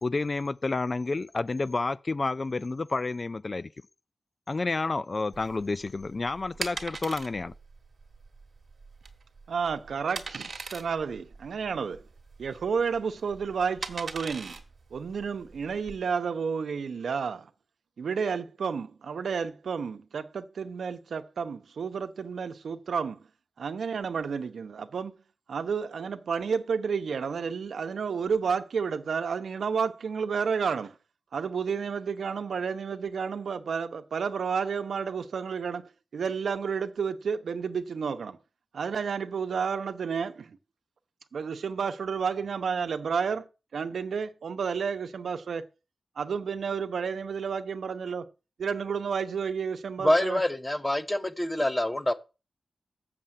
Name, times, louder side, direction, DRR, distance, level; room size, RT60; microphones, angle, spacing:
voice 1, 0.0-3.7 4.5-7.5, left 3 dB, 35° left, 0.4 m, -30 dB
sound 1, 5.3-16.0, right 4 dB, 50° right, 1.7 m, -41 dB
voice 2, 9.5-12.0 12.4-14.6 14.9-17.5 18.0-23.2 23.6-25.1 25.5-31.0 31.3-38.4 38.7-40.6 41.3-45.7 46.2-48.3 48.6-50.4, right 6 dB, 85° right, 0.9 m, -31 dB
voice 3, 50.0-52.1, left 1 dB, 10° left, 0.9 m, -26 dB
7.4 x 6.8 x 7.6 m
wide cardioid pair, 145°, 0 cm